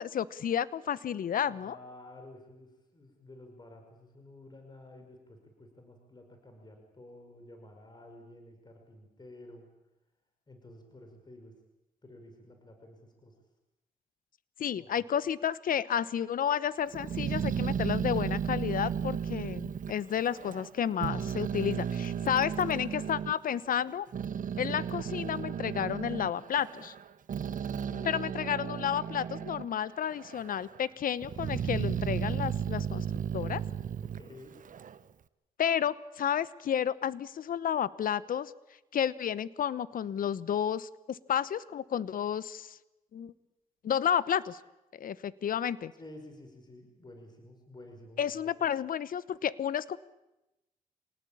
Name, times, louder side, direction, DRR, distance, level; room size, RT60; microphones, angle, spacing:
voice 1, 0.0-1.7 14.6-24.1 24.6-26.9 28.1-33.1 33.3-33.6 35.6-38.5 38.9-42.8 43.1-43.3 43.8-44.6 44.9-45.9 48.2-50.0, left 9 dB, 65° left, 17 dB, 1.0 m, -31 dB
voice 2, 1.5-9.7 10.5-11.5 12.0-13.4 14.8-14.9 27.8-28.2 34.0-34.6 46.0-48.3, left 1 dB, 30° left, 4 dB, 5.4 m, -51 dB
Growling, 16.9-20.7 21.0-23.3 23.9-29.7 30.1-30.8 31.2-35.0, right 8 dB, 60° right, 1.1 m, -34 dB
26.5 x 18.5 x 8.7 m, 0.96 s
cardioid pair, 70°, 16 cm